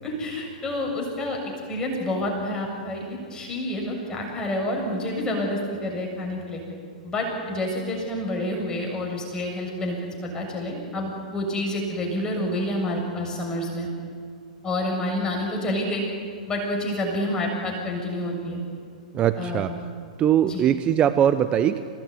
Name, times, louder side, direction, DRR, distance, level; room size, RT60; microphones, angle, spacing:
voice 1, 0.0-6.6 7.0-10.0 10.2-13.9 14.6-16.0 16.5-18.6 19.4-19.7 20.4-20.6, left 1 dB, 20° left, 0 dB, 7.1 m, -28 dB
voice 2, 19.1-19.7 20.2-21.8, right 10 dB, 25° right, 11 dB, 0.9 m, -21 dB
28.0 x 18.5 x 9.7 m, 2.3 s
figure-of-eight pair, 110°, 4 cm